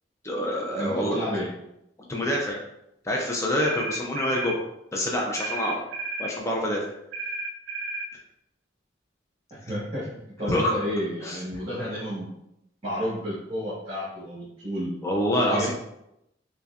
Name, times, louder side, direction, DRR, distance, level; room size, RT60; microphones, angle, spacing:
voice 1, 0.2-1.4 2.1-2.6 3.0-4.6 4.9-5.8 6.2-6.8 10.5-10.7 11.2-11.4 15.0-15.7, left 1 dB, 15° left, -2 dB, 0.4 m, -26 dB
voice 2, 0.8-1.5 9.6-10.1 10.4-12.3 12.8-14.9 15.5-15.7, equal, 30° right, -9 dB, 1.3 m, -31 dB
sound 1, 3.6-4.6 5.4-6.3 7.1-8.1, right 2 dB, 65° right, 0.4 m, -33 dB
5.2 x 2.2 x 2.4 m, 0.83 s
head